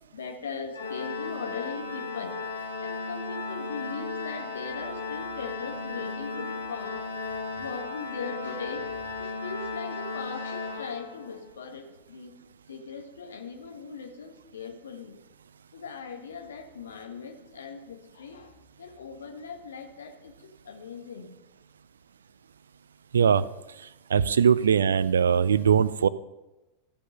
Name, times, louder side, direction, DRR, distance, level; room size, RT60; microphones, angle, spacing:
voice 1, 0.1-2.4 2.8-7.0 7.5-12.3 12.7-15.2 15.7-21.3 24.6-24.7, left 5 dB, 65° left, 4 dB, 1.4 m, -39 dB
Organ, 0.7-11.5, left 3 dB, 85° left, 1.4 m, -35 dB
voice 2, 23.1-23.4 24.1-26.1, right 7 dB, 70° right, 18 dB, 0.4 m, -21 dB
15.0 x 5.2 x 5.4 m, 1.0 s
figure-of-eight pair, 90°, 0 cm